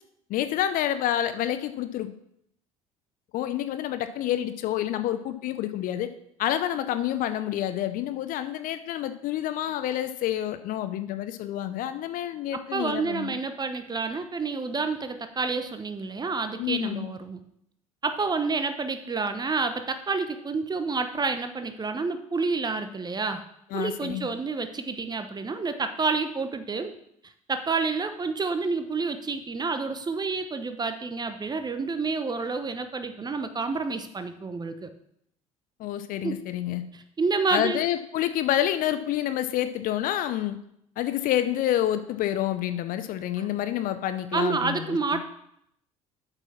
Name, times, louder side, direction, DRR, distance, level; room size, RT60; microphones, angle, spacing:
voice 1, 0.3-2.1 3.3-6.1 6.4-13.3 16.6-17.1 23.7-24.3 35.8-36.8 37.5-40.6 41.0-45.2, left 12 dB, 50° left, 11 dB, 0.6 m, -28 dB
voice 2, 12.5-17.4 18.0-23.4 23.7-26.9 27.5-34.9 36.2-36.4 36.9-37.8 43.4-43.5 44.3-45.2, right 4 dB, 25° right, 9 dB, 0.9 m, -29 dB
8.3 x 5.4 x 5.9 m, 0.74 s
figure-of-eight pair, 60°, 18 cm